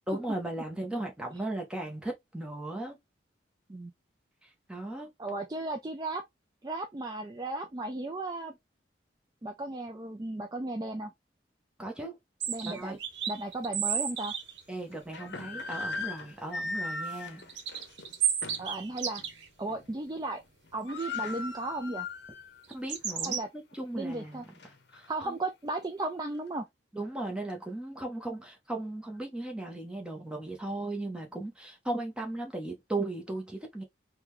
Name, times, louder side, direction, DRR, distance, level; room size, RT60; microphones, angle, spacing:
voice 1, 0.1-3.0 4.7-5.1 11.8-12.2 12.6-13.0 14.7-17.5 22.7-24.5 24.9-25.4 26.9-33.8, right 2 dB, 5° right, 0.8 m, -37 dB
voice 2, 5.2-6.2 6.6-8.6 9.4-11.1 12.5-13.0 13.3-14.3 18.6-19.2 19.6-20.4 20.7-22.1 23.2-23.5 23.9-24.5 25.1-26.7, right 2 dB, 20° right, 0.4 m, -35 dB
sound 1, 12.4-14.6 17.4-19.5 21.0-21.2 22.6-23.4, right 8 dB, 80° right, 0.8 m, -32 dB
sound 2, 13.2-13.3 13.9-14.0 14.9-18.8 19.2-19.3 19.7-20.1 20.4-20.5 20.6-22.6 23.0-23.1 23.7-25.1, left 3 dB, 65° left, 0.7 m, -39 dB
3.7 x 2.2 x 3.0 m
head